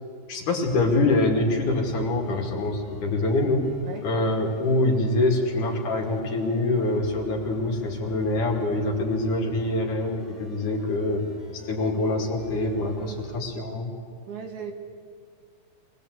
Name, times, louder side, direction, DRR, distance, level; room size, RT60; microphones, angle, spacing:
voice 1, 0.3-3.7 4.0-11.3 11.6-13.9, left 2 dB, 65° left, 1 dB, 3.8 m, -25 dB
sound 1, 0.7-13.4, equal, 15° left, 2.9 m, -45 dB
voice 2, 12.5-13.3 14.3-14.7, right 6 dB, 65° right, 4 dB, 2.8 m, -39 dB
24.0 x 19.5 x 8.2 m, 2.1 s
omnidirectional pair, 3.9 m